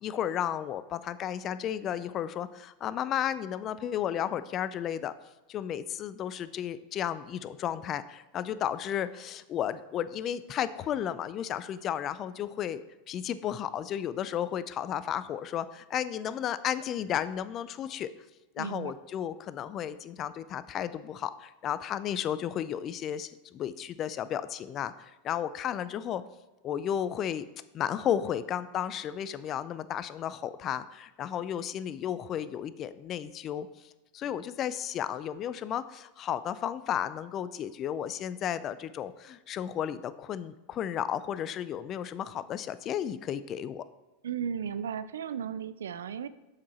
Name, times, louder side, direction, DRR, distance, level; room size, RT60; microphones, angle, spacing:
voice 1, 0.0-5.1 5.5-12.8 13.1-18.1 18.5-26.2 26.6-27.5 27.7-43.9, left 10 dB, 40° left, 14 dB, 0.4 m, -33 dB
voice 2, 18.6-18.9 44.2-46.3, right 7 dB, 85° right, 14 dB, 0.3 m, -35 dB
7.3 x 4.6 x 4.3 m, 1.1 s
hypercardioid pair, 105°, 0 cm